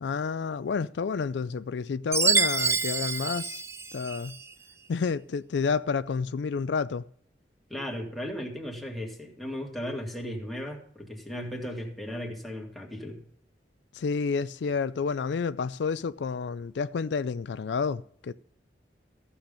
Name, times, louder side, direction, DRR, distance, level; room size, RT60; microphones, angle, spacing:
voice 1, 0.0-3.6 3.9-4.3 4.9-7.1 14.0-18.3, left 5 dB, 75° left, 0.4 m, -30 dB
Chime, 2.1-4.4, right 5 dB, 15° right, 0.7 m, -27 dB
voice 2, 7.7-13.2, equal, ahead, 2.1 m, -36 dB
14.5 x 7.2 x 5.2 m
head